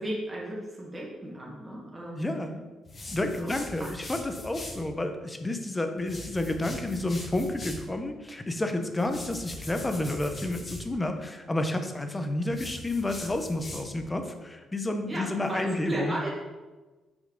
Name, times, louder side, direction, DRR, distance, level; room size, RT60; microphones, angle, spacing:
voice 1, 0.0-2.2 3.4-3.5 3.8-3.9 15.0-16.3, right 1 dB, 15° right, -4 dB, 1.4 m, -34 dB
voice 2, 2.1-2.6 3.1-16.1, left 1 dB, 15° left, 6 dB, 0.7 m, -30 dB
sound 1, 2.9-4.8 6.0-7.9 9.0-10.9 12.5-14.1, left 2 dB, 35° left, 1.3 m, -41 dB
5.8 x 4.4 x 3.7 m, 1.2 s
cardioid pair, 90°, 0 cm